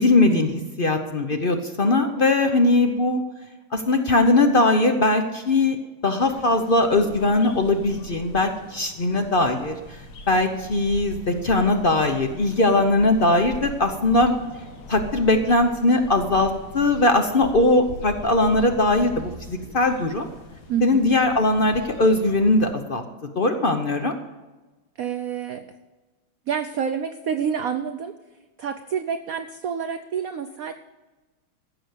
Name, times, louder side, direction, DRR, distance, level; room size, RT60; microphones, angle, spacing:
voice 1, 0.0-3.2 3.7-5.8 6.0-9.8 10.3-14.3 14.9-19.1 19.5-20.3 20.8-23.0 23.4-24.1, left 2 dB, 55° left, 6 dB, 0.6 m, -20 dB
sound 1, 6.2-22.7, left 1 dB, 75° left, 2.2 m, -41 dB
voice 2, 20.7-21.1 25.0-25.7 26.5-28.1 28.6-30.7, right 7 dB, 75° right, 9 dB, 0.8 m, -28 dB
15.0 x 7.0 x 7.9 m, 1.2 s
omnidirectional pair, 2.2 m